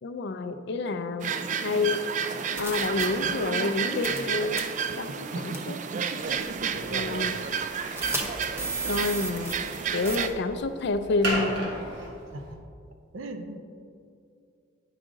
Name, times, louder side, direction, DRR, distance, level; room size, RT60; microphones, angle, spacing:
voice 1, 0.0-2.1 2.6-5.8 6.9-7.4 8.9-9.6 9.9-11.7, left 3 dB, 60° left, 9 dB, 0.4 m, -29 dB
sound 1, 1.2-10.3, right 6 dB, 40° right, 0.3 m, -31 dB
sound 2, 1.9-2.0 2.6-3.1 4.0-4.3 4.5-4.6 5.5-5.7 6.4-6.5 8.0-9.8 10.0-10.2, right 2 dB, 15° right, 0.8 m, -32 dB
sound 3, 6.2-12.5, right 1 dB, 60° right, 1.9 m, -38 dB
voice 2, 6.7-7.5 12.3-12.6 13.1-13.6, right 2 dB, 75° right, 7 dB, 0.7 m, -38 dB
9.9 x 5.0 x 3.7 m, 2.4 s
head